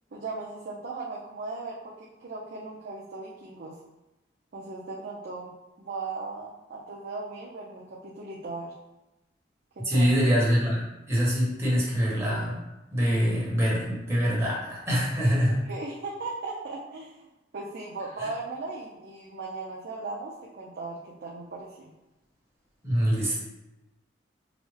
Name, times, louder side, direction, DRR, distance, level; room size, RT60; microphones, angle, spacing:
voice 1, 0.1-3.8 4.5-8.7 9.8-10.1 15.6-17.3 17.5-21.9, right 3 dB, 55° right, -5 dB, 0.5 m, -37 dB
voice 2, 9.8-12.6 12.9-15.6 18.2-18.3 22.8-23.4, equal, 15° right, -6 dB, 1.2 m, -24 dB
4.9 x 2.1 x 3.2 m, 0.97 s
head